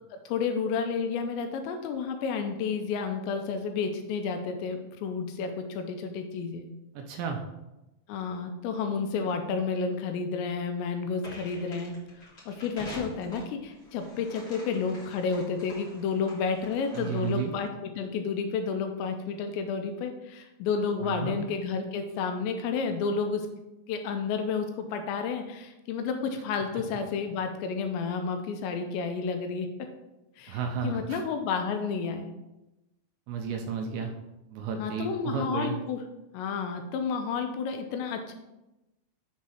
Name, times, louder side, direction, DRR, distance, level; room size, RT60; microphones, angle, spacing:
voice 1, 0.1-6.6 8.1-23.5 23.9-29.7 30.4-32.3 34.8-36.0 36.3-38.3, left 5 dB, 80° left, 6 dB, 2.7 m, -31 dB
voice 2, 6.9-7.4 16.9-17.5 21.0-21.4 30.5-31.2 33.3-34.1 34.5-35.8, right 6 dB, 80° right, 4 dB, 2.7 m, -32 dB
sound 1, 11.2-17.6, left 1 dB, 60° left, 0.8 m, -46 dB
7.5 x 3.6 x 5.7 m, 0.98 s
omnidirectional pair, 5.4 m